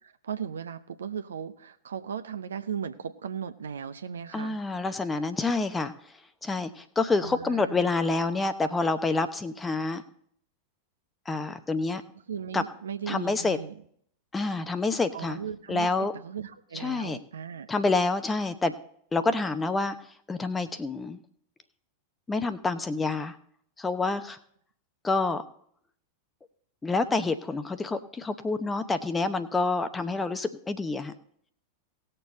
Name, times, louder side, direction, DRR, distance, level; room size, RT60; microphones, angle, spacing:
voice 1, 0.0-4.6 7.2-7.9 12.3-13.8 15.1-17.7, right 7 dB, 65° right, 10 dB, 0.7 m, -37 dB
voice 2, 4.3-5.9 6.4-10.0 11.3-12.0 12.5-12.6 13.1-13.6 14.3-15.4 15.7-16.1 16.7-17.2 17.7-18.7 19.1-20.0 20.3-21.2 22.3-23.4 23.8-24.4 25.0-25.4 26.8-31.1, left 3 dB, 15° left, 11 dB, 0.8 m, -27 dB
18.5 x 6.8 x 4.1 m, 0.64 s
figure-of-eight pair, 90°, 0 cm